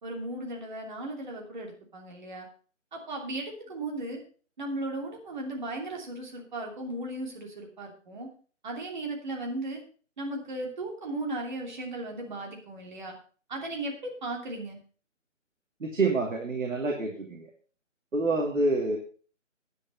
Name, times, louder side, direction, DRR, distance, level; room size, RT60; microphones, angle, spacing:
voice 1, 0.0-2.5 2.9-4.2 4.6-8.3 8.6-9.8 10.2-13.1 13.5-14.8, right 2 dB, 35° right, 1 dB, 3.0 m, -36 dB
voice 2, 15.8-17.5 18.1-19.0, right 2 dB, 80° right, 1 dB, 2.5 m, -27 dB
9.7 x 9.4 x 5.3 m, 0.41 s
hypercardioid pair, 170°, 38 cm